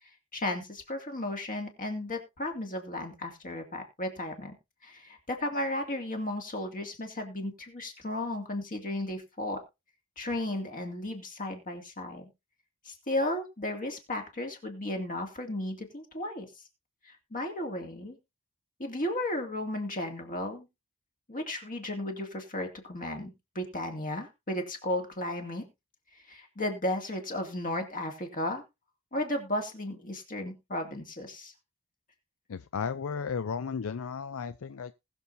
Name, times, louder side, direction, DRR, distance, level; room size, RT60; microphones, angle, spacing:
voice 1, 0.3-4.5 4.8-9.6 10.2-12.3 12.8-16.6 17.0-18.2 18.8-20.7 21.3-25.7 26.1-28.6 29.1-31.5, left 1 dB, 40° left, 2.5 m, -34 dB
voice 2, 32.5-34.9, left 6 dB, 70° left, 0.5 m, -34 dB
20.0 x 6.9 x 2.7 m
head